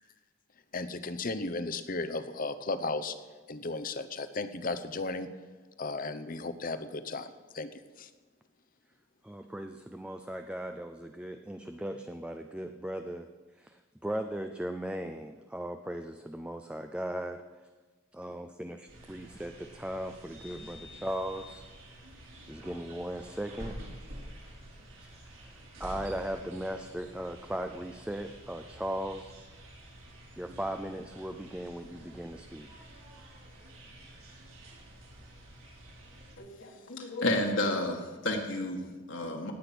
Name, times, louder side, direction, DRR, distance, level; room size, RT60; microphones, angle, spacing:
voice 1, 0.7-3.2 3.5-5.3 5.8-8.1, left 3 dB, 40° left, 12 dB, 0.8 m, -35 dB
voice 2, 9.2-13.3 13.6-17.4 18.1-21.6 22.5-23.7 25.3-29.3 30.4-32.7, right 1 dB, 5° right, 6 dB, 0.5 m, -38 dB
sound 1, 18.9-36.4, right 1 dB, 70° right, 4.3 m, -49 dB
voice 3, 36.4-39.5, left 1 dB, 60° left, 1 dB, 1.8 m, -31 dB
18.0 x 8.7 x 6.1 m, 1.3 s
head